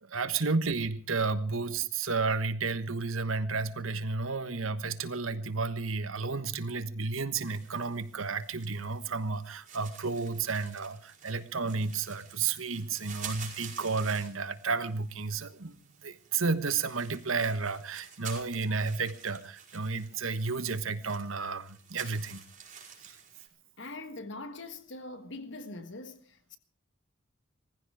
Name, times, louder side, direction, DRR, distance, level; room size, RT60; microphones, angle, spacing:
voice 1, 0.0-15.8 16.0-22.4 23.0-23.2, right 4 dB, 90° right, 1.4 m, -32 dB
sound 1, 7.3-23.5, right 7 dB, 40° right, 5.0 m, -49 dB
voice 2, 23.8-26.6, left 2 dB, 60° left, 1.5 m, -42 dB
19.0 x 15.5 x 4.9 m
head